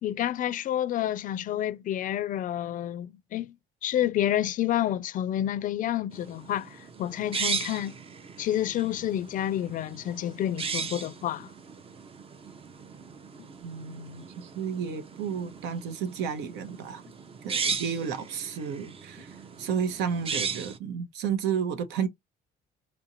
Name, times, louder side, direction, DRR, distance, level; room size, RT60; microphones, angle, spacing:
voice 1, 0.0-3.6 3.8-7.9 8.4-11.5, left 12 dB, 50° left, 0.4 m, -29 dB
sound 1, 6.1-20.8, right 5 dB, 35° right, 0.6 m, -37 dB
voice 2, 13.6-17.0 17.4-22.1, right 7 dB, 90° right, 0.8 m, -32 dB
4.3 x 2.5 x 2.9 m
cardioid pair, 110°, 17 cm